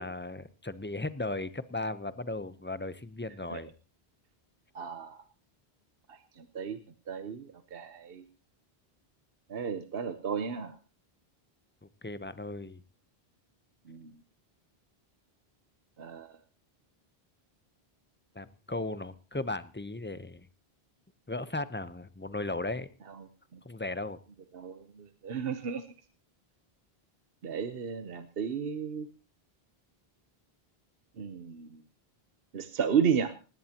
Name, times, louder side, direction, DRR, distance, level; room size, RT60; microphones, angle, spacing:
voice 1, 0.0-3.7 12.0-12.8 18.3-20.5 21.3-22.9 23.6-24.2, left 2 dB, 15° left, 14 dB, 0.7 m, -36 dB
voice 2, 4.7-5.2 6.1-6.8 7.1-8.2 9.5-10.7 13.9-14.1 16.0-16.3 23.5-23.6 24.5-25.8 27.4-29.1 31.2-31.8 32.5-33.3, right 7 dB, 70° right, 10 dB, 1.1 m, -33 dB
18.5 x 17.0 x 2.9 m, 0.34 s
omnidirectional pair, 1.0 m